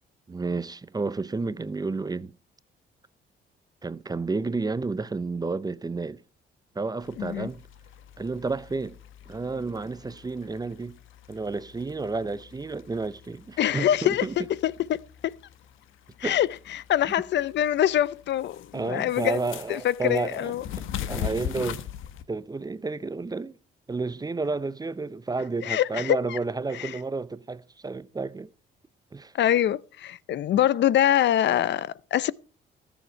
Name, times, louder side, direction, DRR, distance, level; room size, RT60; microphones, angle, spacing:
voice 1, 0.3-2.3 3.8-6.2 6.7-7.6 8.2-9.0 9.3-11.0 11.3-14.4 16.2-16.4 18.7-21.8 22.3-23.6 23.9-28.5 29.1-29.3, right 3 dB, 20° right, 0.6 m, -31 dB
sound 1, 7.0-22.2, left 9 dB, 85° left, 1.2 m, -41 dB
voice 2, 7.2-7.5 13.6-15.4 16.2-19.4 19.7-20.6 25.6-26.4 26.7-26.9 29.3-32.3, left 11 dB, 65° left, 0.6 m, -24 dB
20.5 x 7.2 x 4.5 m
cardioid pair, 90°, 20 cm